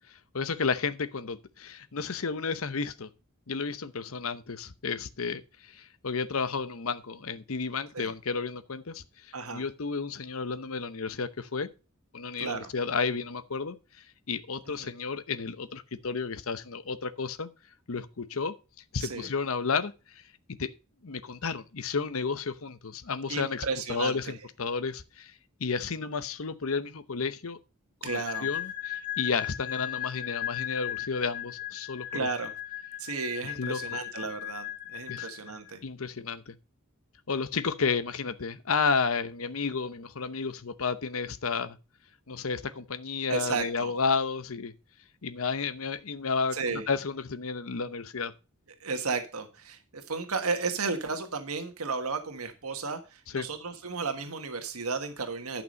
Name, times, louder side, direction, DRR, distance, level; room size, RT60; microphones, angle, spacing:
voice 1, 0.1-3.1 3.5-9.0 9.5-11.7 12.1-13.8 14.3-17.5 17.9-18.5 18.9-20.2 20.6-20.7 21.0-25.3 25.6-27.6 28.0-32.3 33.4-33.8 35.1-35.3 35.8-36.5 37.3-41.8 42.3-44.7 45.2-46.6 46.9-48.3 53.3-53.5, left 5 dB, 70° left, 0.8 m, -32 dB
voice 2, 9.3-9.6 12.4-12.7 14.8-14.9 19.0-19.3 23.3-24.3 28.0-28.5 32.1-32.5 33.0-35.8 43.3-43.9 46.5-46.9 48.8-55.6, right 4 dB, 80° right, 1.4 m, -33 dB
sound 1, 28.1-35.7, left 13 dB, 40° left, 1.2 m, -37 dB
11.0 x 6.0 x 5.2 m
head